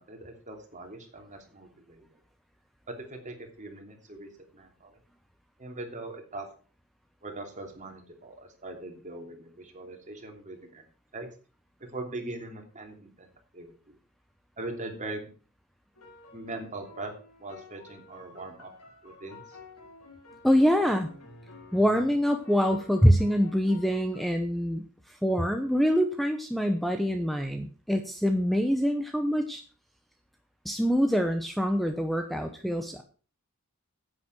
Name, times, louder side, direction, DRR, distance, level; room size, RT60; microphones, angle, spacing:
voice 1, 0.0-2.0 2.9-4.9 5.6-6.5 7.2-10.8 11.1-11.3 11.8-13.3 13.5-14.0 14.6-15.3 16.3-17.1 17.4-18.7 19.0-19.4, right 2 dB, 35° right, 3 dB, 3.0 m, -41 dB
sound 1, 15.9-24.2, left 3 dB, 85° left, 4.1 m, -51 dB
voice 2, 20.4-21.1 21.7-29.6 30.6-33.0, equal, ahead, 6 dB, 0.9 m, -25 dB
10.0 x 8.9 x 6.3 m, 0.38 s
head